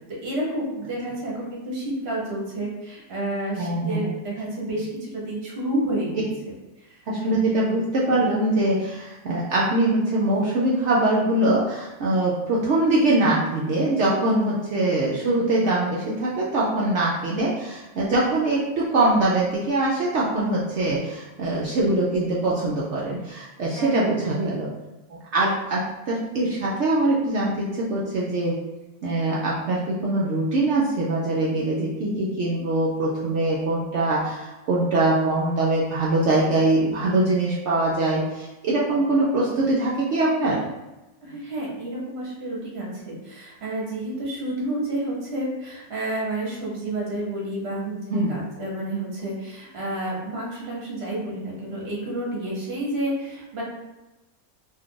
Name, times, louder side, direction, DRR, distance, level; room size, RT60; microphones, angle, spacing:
voice 1, 0.2-6.3 6.8-7.0 7.2-7.3 23.8-24.3 41.2-53.6, right 1 dB, 50° right, -3 dB, 1.0 m, -30 dB
voice 2, 3.6-4.1 7.1-24.7 25.1-28.6 29.0-40.6 48.1-48.3, right 2 dB, 70° right, -5 dB, 0.7 m, -23 dB
2.6 x 2.4 x 3.6 m, 1.1 s
omnidirectional pair, 1.6 m